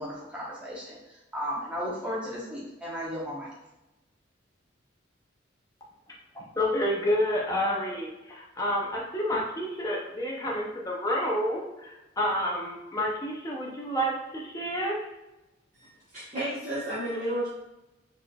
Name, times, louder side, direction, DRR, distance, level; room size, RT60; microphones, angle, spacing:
voice 1, 0.0-3.5, equal, 5° right, -6 dB, 0.9 m, -35 dB
voice 2, 6.3-15.1, equal, 15° left, -3 dB, 0.5 m, -29 dB
voice 3, 16.1-17.5, right 1 dB, 40° right, -11 dB, 0.9 m, -31 dB
4.2 x 3.3 x 2.2 m, 0.98 s
head